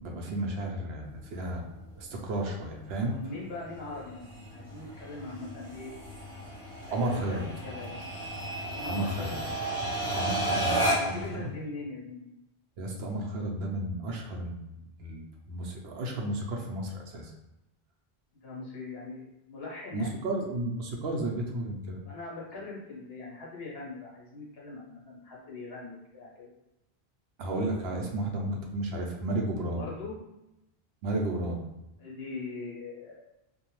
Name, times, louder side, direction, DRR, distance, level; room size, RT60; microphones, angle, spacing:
voice 1, 0.0-1.6 2.0-3.1 6.9-7.4 8.8-9.3 10.2-11.4 12.8-17.3 19.9-22.0 27.4-29.8 31.0-31.6, right 1 dB, 70° right, 1 dB, 0.8 m, -33 dB
sound 1, 1.0-11.3, right 1 dB, 20° right, 1.0 m, -34 dB
voice 2, 3.1-5.9 6.8-8.0 8.7-9.5 10.9-12.3 18.4-20.2 22.0-26.5 29.7-30.2 32.0-33.2, left 3 dB, 65° left, -4 dB, 1.1 m, -41 dB
2.6 x 2.1 x 3.0 m, 0.92 s
omnidirectional pair, 1.1 m